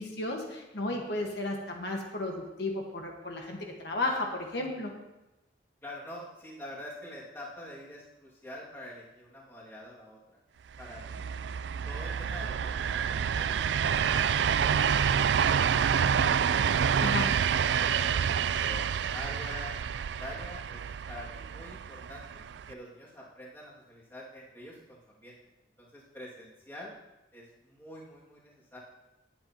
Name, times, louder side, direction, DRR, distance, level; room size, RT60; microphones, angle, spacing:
voice 1, 0.0-4.9 17.0-17.4, left 2 dB, 70° left, 0 dB, 1.5 m, -33 dB
voice 2, 5.8-10.4 10.8-11.3 11.9-16.8 17.5-18.1 18.6-25.4 25.8-27.0 27.3-28.8, left 1 dB, 10° left, -5 dB, 2.2 m, -46 dB
sound 1, 10.8-22.7, right 7 dB, 80° right, 0.3 m, -28 dB
18.5 x 7.7 x 2.9 m, 0.96 s
head